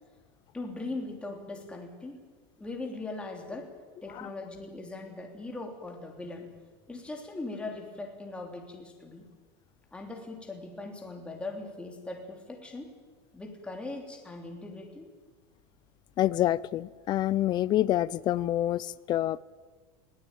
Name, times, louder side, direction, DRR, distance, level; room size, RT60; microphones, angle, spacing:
voice 1, 0.5-2.2 2.6-3.7 4.0-6.5 6.9-9.3 9.9-12.9 13.3-15.1, left 2 dB, 10° left, 3.2 m, -40 dB
voice 2, 16.2-19.4, left 13 dB, 30° left, 0.6 m, -27 dB
21.0 x 17.5 x 9.1 m
supercardioid pair, 145°, 13 cm